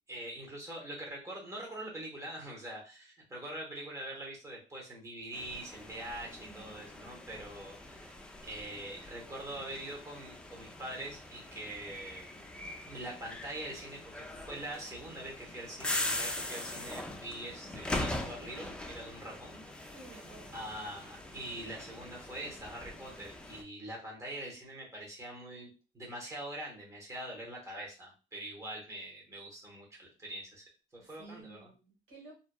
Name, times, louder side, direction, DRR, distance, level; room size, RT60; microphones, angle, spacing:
voice 1, 0.1-8.2 8.4-12.3 12.9-19.6 20.5-25.7 25.9-30.6 30.9-31.7, right 1 dB, 20° right, -3 dB, 1.1 m, -44 dB
sound 1, 5.3-23.6, left 1 dB, 5° left, 0.3 m, -42 dB
voice 2, 6.4-6.9 19.1-19.4 19.8-20.8 31.0-32.3, right 3 dB, 85° right, -2 dB, 1.2 m, -54 dB
2.7 x 2.2 x 2.3 m, 0.33 s
cardioid pair, 110°, 17 cm